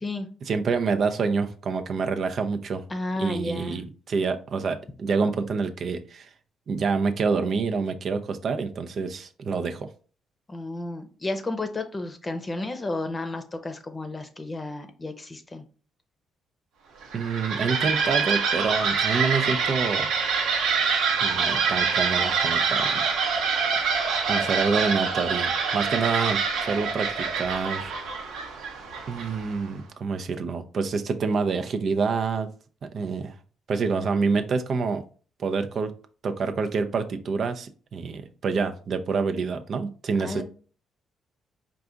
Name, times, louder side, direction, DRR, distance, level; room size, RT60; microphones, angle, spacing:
voice 1, 0.5-2.8 3.2-6.3 6.7-9.9 17.1-20.1 21.2-23.0 24.3-27.9 29.1-32.5 32.9-33.3 33.7-35.0 35.4-35.9 36.2-40.4, right 5 dB, 55° right, 7 dB, 0.5 m, -27 dB
voice 2, 2.9-3.8 10.5-15.6 40.2-40.4, left 2 dB, 25° left, 8 dB, 0.7 m, -32 dB
sound 1, 17.0-29.6, right 5 dB, 90° right, 0.9 m, -25 dB
4.7 x 2.4 x 3.8 m, 0.39 s
cardioid pair, 90°, 0 cm